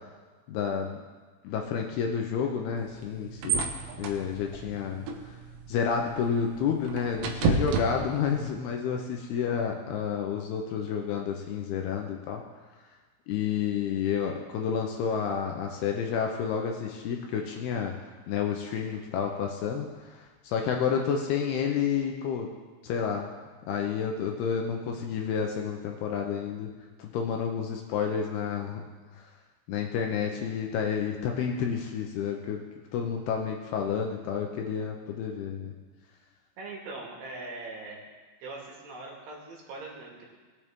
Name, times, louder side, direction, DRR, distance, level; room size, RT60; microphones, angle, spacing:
voice 1, 0.5-1.0 1.4-3.7 4.0-5.4 5.7-12.4 13.3-17.9 18.3-22.5 22.8-23.3 23.7-26.7 27.0-28.8 29.2-29.3 29.7-32.6 32.9-35.7, left 7 dB, 75° left, 2 dB, 2.5 m, -30 dB
sound 1, 2.8-8.5, right 4 dB, 85° right, 3.3 m, -32 dB
voice 2, 36.6-38.0 38.4-40.3, right 2 dB, 70° right, -3 dB, 4.1 m, -41 dB
20.0 x 8.1 x 3.7 m, 1.4 s
omnidirectional pair, 5.1 m